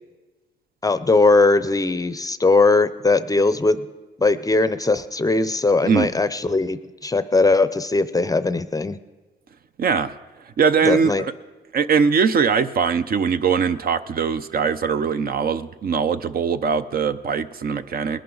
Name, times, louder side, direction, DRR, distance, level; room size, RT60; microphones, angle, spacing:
voice 1, 0.8-3.8 4.2-9.0 10.8-11.2, left 3 dB, 20° left, 13 dB, 0.6 m, -19 dB
voice 2, 9.8-10.1 10.6-11.3 11.7-18.2, right 6 dB, 50° right, 11 dB, 0.6 m, -21 dB
20.5 x 10.5 x 3.9 m, 1.3 s
cardioid pair, 90°, 20 cm